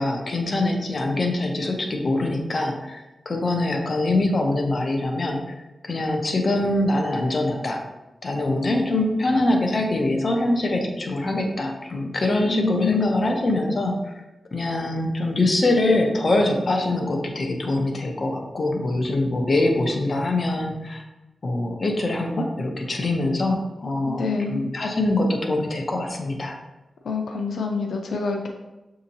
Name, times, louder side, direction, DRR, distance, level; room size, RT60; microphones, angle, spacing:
voice 1, 0.0-5.5 5.8-7.8 8.2-14.1 14.5-21.0 21.4-26.6, left 2 dB, 45° left, 2 dB, 0.7 m, -23 dB
voice 2, 12.5-13.2 24.1-24.6 27.0-28.5, left 4 dB, 85° left, 2 dB, 0.4 m, -27 dB
6.2 x 2.8 x 2.7 m, 1.1 s
wide cardioid pair, 105°, 0 cm